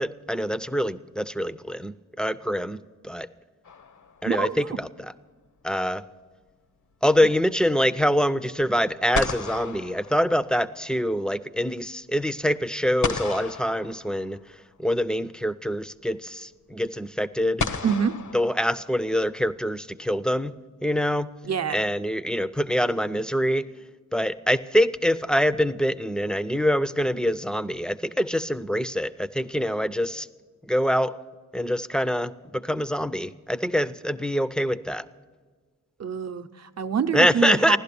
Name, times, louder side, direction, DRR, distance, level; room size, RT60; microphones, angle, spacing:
voice 1, 0.0-3.3 4.2-5.1 5.6-6.0 7.0-14.4 14.8-17.8 18.3-20.6 20.8-21.3 21.7-23.6 24.1-30.3 30.6-31.2 31.5-35.0 37.1-37.8, equal, 5° left, 14 dB, 0.4 m, -25 dB
sound 1, 3.7-4.5 8.6-8.7 9.1-10.9 13.0-14.6 16.0-16.1 17.6-19.2, left 5 dB, 70° left, 0.8 m, -33 dB
voice 2, 4.3-4.8 17.8-18.2 21.4-21.8 36.0-37.8, right 6 dB, 55° right, 8 dB, 0.7 m, -26 dB
16.0 x 11.5 x 6.8 m, 1.5 s
wide cardioid pair, 95°, 31 cm